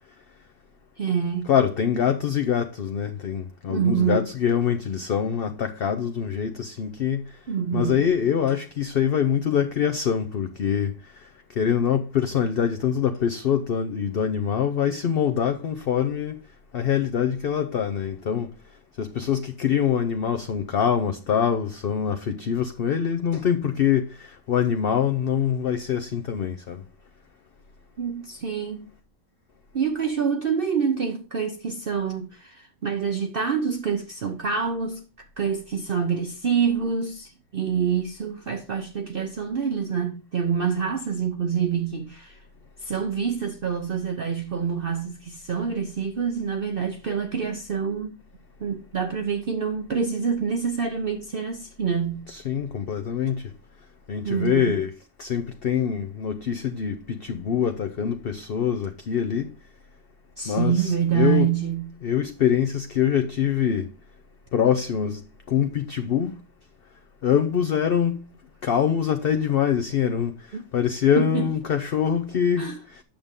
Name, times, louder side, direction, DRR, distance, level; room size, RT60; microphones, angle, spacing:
voice 1, 1.0-1.5 3.7-4.3 7.5-8.0 28.0-28.9 29.7-35.0 35.4-42.4 42.8-48.2 48.6-52.3 54.2-54.8 60.4-61.9 70.5-70.6 71.2-71.5 72.6-72.8, right 7 dB, 50° right, 0.8 m, -26 dB
voice 2, 1.5-7.2 7.7-10.9 11.6-16.4 16.7-18.5 19.0-26.8 52.3-53.5 54.1-54.9 55.2-59.5 60.5-61.5 62.0-63.9 64.5-65.2 65.5-66.3 67.2-68.2 68.6-73.0, left 8 dB, 55° left, 0.7 m, -24 dB
8.7 x 6.7 x 3.6 m
omnidirectional pair, 1.5 m